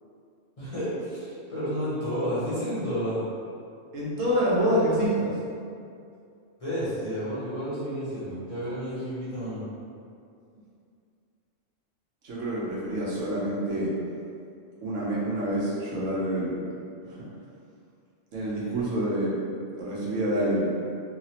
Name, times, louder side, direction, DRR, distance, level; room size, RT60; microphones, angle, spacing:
voice 1, 0.6-3.2 6.6-9.6, equal, 35° left, -12 dB, 0.7 m, -31 dB
voice 2, 3.9-5.3 12.2-13.9 14.8-16.5 17.1-17.2 18.3-19.4 19.8-20.7, right 1 dB, 80° right, -6 dB, 1.1 m, -27 dB
3.1 x 2.1 x 2.7 m, 2.4 s
omnidirectional pair, 1.3 m